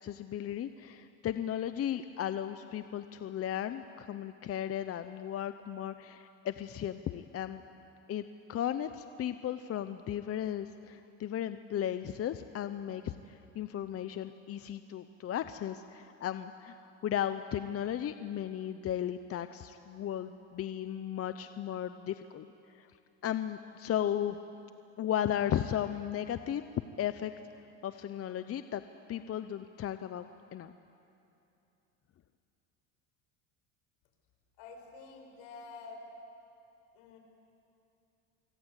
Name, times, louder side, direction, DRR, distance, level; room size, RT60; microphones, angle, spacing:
voice 1, 0.0-7.6 8.1-22.4 22.7-22.9 23.2-24.4 25.0-26.6 27.0-27.3 27.8-28.8 29.1-30.7, left 10 dB, 40° left, 11 dB, 0.9 m, -35 dB
voice 2, 34.6-36.0 36.9-37.2, left 4 dB, 75° left, 3 dB, 5.8 m, -48 dB
25.0 x 24.5 x 8.3 m, 2.8 s
supercardioid pair, 95°, 36 cm